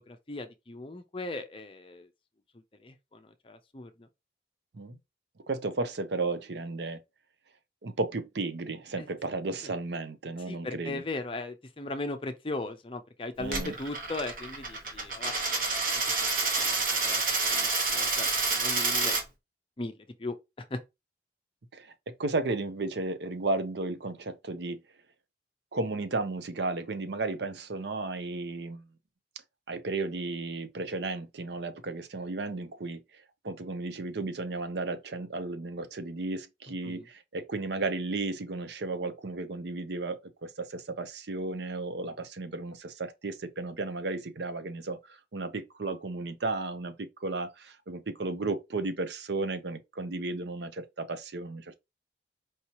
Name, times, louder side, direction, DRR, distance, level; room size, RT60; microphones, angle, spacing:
voice 1, 0.1-2.1 2.8-4.1 9.0-9.1 9.6-9.7 10.5-16.3 16.6-19.2 19.8-19.9 20.2-20.3 20.7-20.8 36.8-37.1, left 2 dB, 30° left, 0.5 m, -38 dB
voice 2, 5.5-7.0 7.8-11.0 13.4-13.7 21.7-21.9 22.2-24.8 25.7-28.8 29.7-33.0 33.4-45.0 45.3-51.8, right 3 dB, 70° right, 0.6 m, -34 dB
Coin (dropping), 13.4-19.2, right 3 dB, 50° right, 1.1 m, -28 dB
4.7 x 2.8 x 2.9 m
head